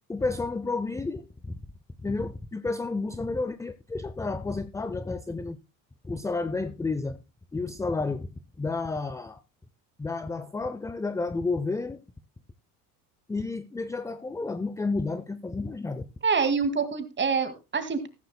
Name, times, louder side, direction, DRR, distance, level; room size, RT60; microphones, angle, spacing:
voice 1, 0.1-1.6 2.0-5.6 6.0-7.2 7.5-8.3 8.6-9.4 10.0-12.0 13.3-16.1, left 3 dB, 5° left, 0.5 m, -31 dB
voice 2, 16.2-18.1, right 5 dB, 25° right, 2.2 m, -26 dB
14.0 x 13.5 x 2.2 m
supercardioid pair, 85°, 44 cm